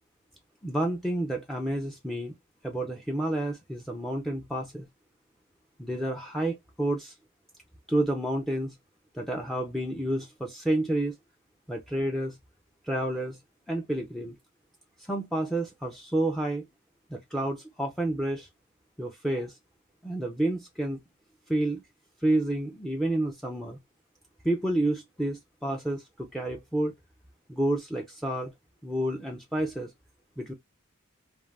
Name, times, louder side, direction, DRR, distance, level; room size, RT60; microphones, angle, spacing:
voice 1, 0.6-2.3 2.6-4.9 5.8-7.1 7.9-8.8 9.1-11.1 11.7-12.4 12.8-13.4 13.7-14.4 15.0-16.7 17.1-18.5 19.0-19.6 20.0-21.0 21.5-21.8 22.2-23.8 24.4-26.9 27.5-28.5 28.8-29.9 30.4-30.5, right 1 dB, ahead, 0.4 m, -29 dB
2.5 x 2.1 x 3.2 m
head